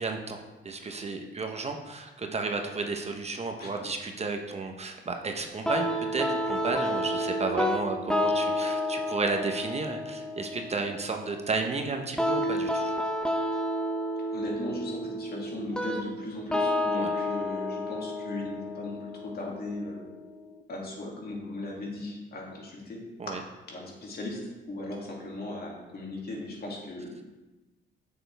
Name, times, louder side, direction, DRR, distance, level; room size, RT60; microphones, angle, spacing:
voice 1, 0.0-12.9 16.9-17.1 23.2-23.4, right 4 dB, 35° right, 4 dB, 0.9 m, -33 dB
sound 1, 5.7-20.6, left 1 dB, 5° left, 0.9 m, -31 dB
voice 2, 14.3-20.1 20.7-23.0 23.3-23.4 23.7-24.4 24.7-27.2, left 2 dB, 50° left, -2 dB, 2.5 m, -37 dB
8.7 x 6.9 x 3.4 m, 1.1 s
cardioid pair, 90°, 20 cm